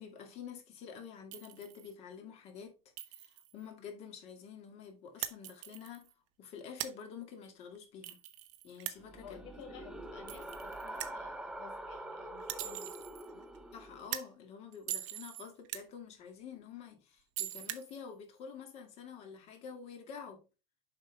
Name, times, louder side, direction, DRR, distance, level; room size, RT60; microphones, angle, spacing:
voice 1, 0.0-2.8 3.1-6.1 6.4-8.2 8.6-9.4 12.6-12.9 13.7-20.5, left 6 dB, 40° left, 2.0 m, -48 dB
Chink clink, 1.3-1.9 3.0-3.6 5.2-6.1 8.0-8.9 10.3-11.0 12.6-13.3 14.7-15.5 17.4-18.0, right 13 dB, 50° right, 1.0 m, -45 dB
sound 1, 5.1-5.4 6.1-6.3 6.6-7.0 7.8-7.9 8.8-9.0 10.1-10.2 10.4-10.5 11.0-11.2 12.4-13.7 14.0-14.4 15.1-15.2 15.6-15.9 16.8-16.9 17.1-17.2 17.5-17.9, right 14 dB, 90° right, 0.8 m, -40 dB
sound 2, 9.0-14.1, right 1 dB, 5° right, 0.6 m, -45 dB
voice 2, 9.2-13.5, left 6 dB, 90° left, 2.2 m, -53 dB
7.2 x 5.4 x 3.4 m
cardioid pair, 160°, 16 cm